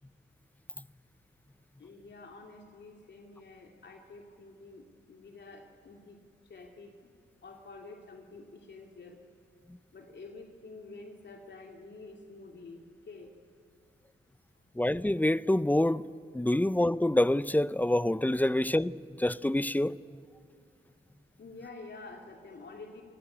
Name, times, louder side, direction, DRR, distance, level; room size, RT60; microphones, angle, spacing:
voice 1, 1.8-7.1 7.4-9.2 9.9-13.4 14.7-14.8 21.4-23.0, left 3 dB, 60° left, 2.4 m, -49 dB
voice 2, 14.8-16.0 16.3-20.0, left 1 dB, 10° left, 0.5 m, -26 dB
26.0 x 17.0 x 9.7 m
cardioid pair, 75°, 21 cm